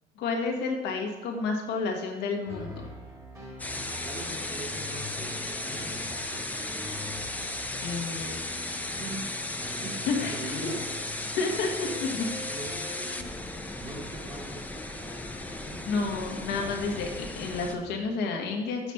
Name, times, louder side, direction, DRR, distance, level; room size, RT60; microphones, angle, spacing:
voice 1, 0.2-2.8 7.8-8.3 10.1-10.6 11.4-12.1 13.2-13.3 15.9-17.1 17.3-18.9, left 4 dB, 85° left, 2 dB, 1.3 m, -30 dB
sound 1, 2.5-18.1, left 1 dB, 15° right, 1.9 m, -44 dB
sound 2, 3.6-17.7, left 2 dB, 10° left, 0.6 m, -36 dB
voice 2, 4.0-6.9 8.9-9.3 9.6-10.9 12.5-15.0 15.4-15.9, right 2 dB, 40° right, -3 dB, 2.5 m, -43 dB
7.0 x 4.2 x 5.7 m, 1.1 s
cardioid pair, 110°, 17 cm